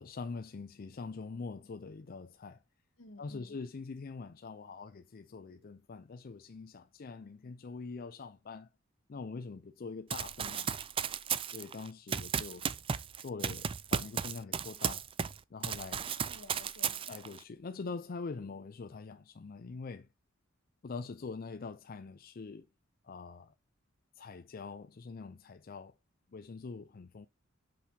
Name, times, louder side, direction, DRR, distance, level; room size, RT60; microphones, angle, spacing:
voice 1, 0.0-2.6 3.2-8.7 9.1-10.7 11.5-12.7 13.2-15.1 15.5-16.1 17.1-20.1 20.8-22.7 23.0-23.5 24.2-25.9 26.3-27.3, left 4 dB, 45° left, 0.4 m, -44 dB
voice 2, 3.0-3.6 16.0-17.4, left 2 dB, 85° left, 2.0 m, -55 dB
Run, 10.1-15.4 15.6-17.4, right 7 dB, 25° right, 0.3 m, -35 dB
6.3 x 5.8 x 2.8 m
head